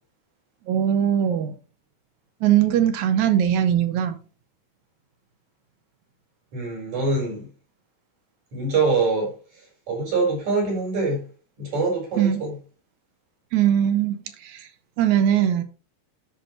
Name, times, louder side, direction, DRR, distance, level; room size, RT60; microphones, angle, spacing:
voice 1, 0.7-1.5 2.4-4.2 12.2-12.4 13.5-14.2 14.4-14.7 15.0-15.6, right 10 dB, 70° right, 2.0 m, -20 dB
voice 2, 6.5-7.5 8.5-9.3 9.9-11.2 11.6-12.5, right 3 dB, 55° right, 5.5 m, -24 dB
12.0 x 5.3 x 3.0 m
omnidirectional pair, 3.8 m